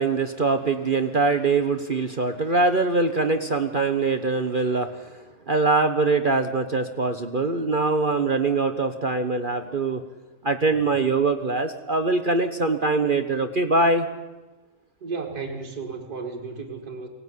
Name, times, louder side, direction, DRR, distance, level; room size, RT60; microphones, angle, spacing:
voice 1, 0.0-5.1 5.5-10.0 10.4-14.1, right 3 dB, 35° right, 8 dB, 1.1 m, -23 dB
voice 2, 15.0-17.1, right 4 dB, 70° right, 0 dB, 2.8 m, -34 dB
23.0 x 18.0 x 9.7 m, 1.2 s
omnidirectional pair, 1.7 m